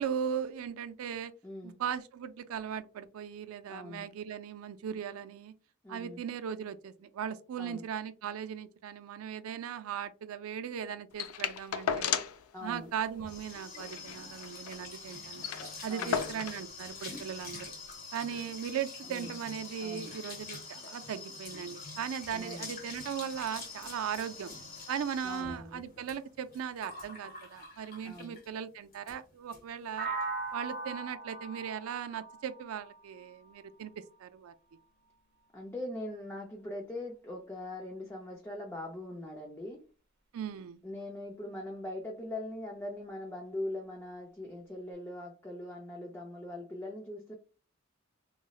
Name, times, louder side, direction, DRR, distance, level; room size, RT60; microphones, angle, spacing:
voice 1, 0.0-1.3 1.6-5.5 5.9-12.2 12.6-15.4 15.8-17.7 18.1-24.5 24.9-30.1 30.5-34.5 40.3-40.8, right 8 dB, 80° right, 0.3 m, -38 dB
voice 2, 1.4-1.8 3.7-4.1 5.8-6.3 7.6-7.9 12.5-12.9 15.9-16.4 19.1-19.4 19.8-20.1 22.3-22.7 25.2-25.9 28.0-28.4 35.5-39.8 40.8-47.3, left 1 dB, 10° left, 0.4 m, -41 dB
sound 1, 11.2-12.5 12.8-12.9 13.2-13.3 13.7-14.8 15.1-15.2 15.4-16.7 17.5-17.6, left 8 dB, 90° left, 0.3 m, -34 dB
sound 2, 12.8-28.5 28.9-29.2 29.5-29.6 29.9-30.3, left 3 dB, 45° left, 0.9 m, -46 dB
sound 3, 30.0-33.9, right 3 dB, 50° right, 0.9 m, -40 dB
4.0 x 2.0 x 2.3 m
head